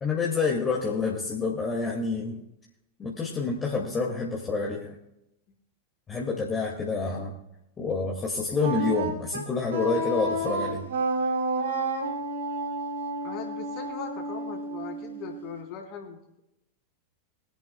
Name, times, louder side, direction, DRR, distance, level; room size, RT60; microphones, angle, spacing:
voice 1, 0.0-2.4 3.0-4.9 6.1-7.4 7.8-10.9, left 4 dB, 20° left, -2 dB, 2.2 m, -28 dB
Wind instrument woodwind instrument, 8.6-15.5, right 2 dB, 65° right, 3.0 m, -30 dB
voice 2, 13.2-16.4, left 7 dB, 40° left, 0 dB, 3.5 m, -40 dB
23.5 x 10.5 x 2.3 m, 0.85 s
figure-of-eight pair, 90°, 0 cm